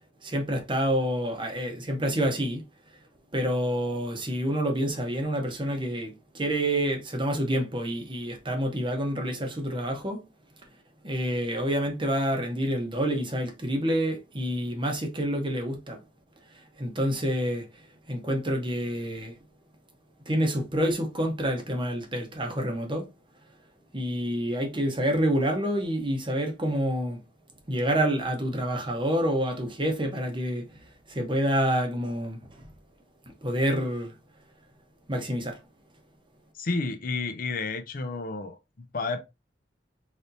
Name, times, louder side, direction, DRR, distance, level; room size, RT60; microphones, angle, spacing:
voice 1, 0.2-2.6 3.3-10.2 11.0-16.0 16.5-19.3 20.3-23.1 23.9-27.2 27.7-32.7 33.4-34.1 35.1-35.6, equal, 25° right, 0.9 m, -28 dB
voice 2, 36.5-39.2, left 3 dB, 50° left, 0.6 m, -31 dB
4.0 x 3.3 x 2.7 m
head